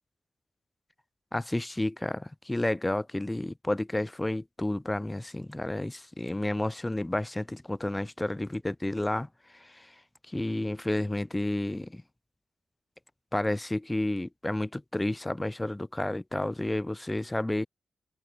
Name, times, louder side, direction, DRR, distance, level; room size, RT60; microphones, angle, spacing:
voice 1, 1.3-9.3 10.3-12.0 13.3-17.7, left 1 dB, 15° left, 0.4 m, -31 dB
wide cardioid pair, 100°, 0 cm